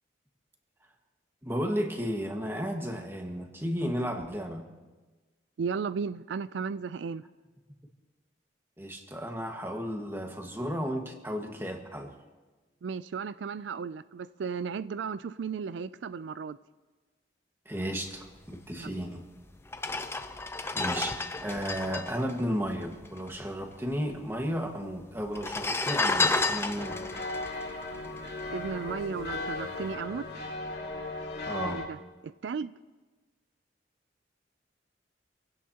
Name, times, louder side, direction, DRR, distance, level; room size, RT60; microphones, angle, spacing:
voice 1, 1.4-4.6 8.8-12.1 17.6-19.2 20.7-27.0 31.4-31.8, equal, 15° right, 1.6 m, -33 dB
voice 2, 5.6-7.2 12.8-16.6 18.8-18.9 28.5-30.2 31.6-32.0 32.2-32.7, right 5 dB, 85° right, 0.4 m, -35 dB
sound 1, 19.0-19.1 19.7-23.4 23.6-23.7 23.9-24.6 25.3-28.7 29.2-29.4, left 3 dB, 15° left, 0.6 m, -31 dB
sound 2, 26.8-31.9, left 2 dB, 65° left, 2.3 m, -37 dB
27.0 x 16.5 x 2.9 m
head